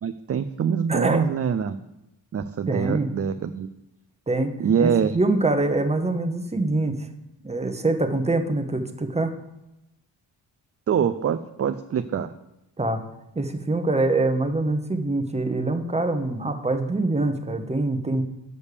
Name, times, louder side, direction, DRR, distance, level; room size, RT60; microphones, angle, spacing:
voice 1, 0.0-1.8 2.3-3.7 4.6-5.2 10.9-12.3, right 7 dB, 35° right, 9 dB, 0.4 m, -24 dB
voice 2, 0.9-1.3 2.7-3.1 4.3-7.1 7.4-9.3 12.8-13.0 13.3-18.2, right 2 dB, 15° right, 6 dB, 1.0 m, -24 dB
6.7 x 5.3 x 6.7 m, 0.91 s
cardioid pair, 75°, 45 cm